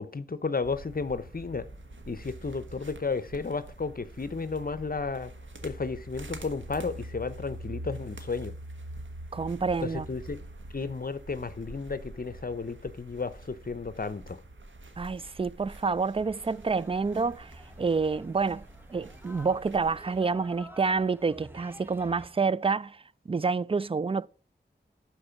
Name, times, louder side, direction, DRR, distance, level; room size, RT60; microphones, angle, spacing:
voice 1, 0.0-1.7 2.1-5.3 5.6-8.5 9.8-10.4 10.7-14.4, left 4 dB, 50° left, 0.8 m, -33 dB
sound 1, 0.6-20.2, right 1 dB, 90° right, 1.3 m, -45 dB
voice 2, 9.3-10.1 15.0-17.5 17.8-18.6 18.9-24.3, right 4 dB, 30° right, 0.4 m, -28 dB
sound 2, 16.2-22.3, right 1 dB, 10° right, 1.1 m, -50 dB
12.0 x 4.6 x 5.8 m
wide cardioid pair, 45°, 19 cm